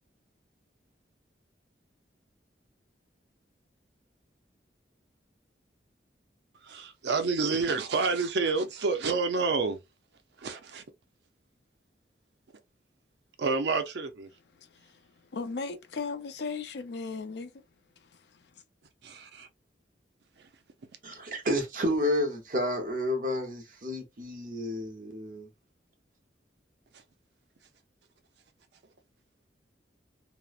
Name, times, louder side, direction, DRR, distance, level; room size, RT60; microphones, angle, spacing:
voice 1, 6.6-9.8 10.4-10.8 13.4-14.3 19.0-19.5, right 4 dB, 75° right, 0.5 m, -29 dB
voice 2, 15.3-17.5, left 4 dB, 70° left, 0.5 m, -35 dB
voice 3, 21.0-25.5, left 1 dB, 50° right, 0.8 m, -30 dB
3.0 x 2.0 x 2.3 m
head